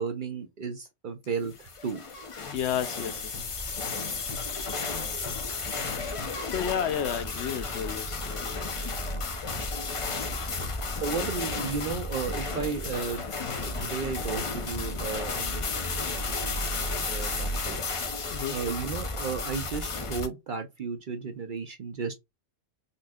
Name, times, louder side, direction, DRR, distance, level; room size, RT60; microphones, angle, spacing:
voice 1, 0.0-1.5 1.8-2.0 11.0-13.2 13.6-17.8 18.5-22.1, right 5 dB, 55° right, 0.6 m, -34 dB
sound 1, 1.5-20.3, left 3 dB, 45° left, 0.4 m, -33 dB
voice 2, 2.5-3.4 6.5-8.5 18.3-18.6, left 8 dB, 70° left, 0.8 m, -31 dB
4.0 x 2.7 x 2.3 m
omnidirectional pair, 1.3 m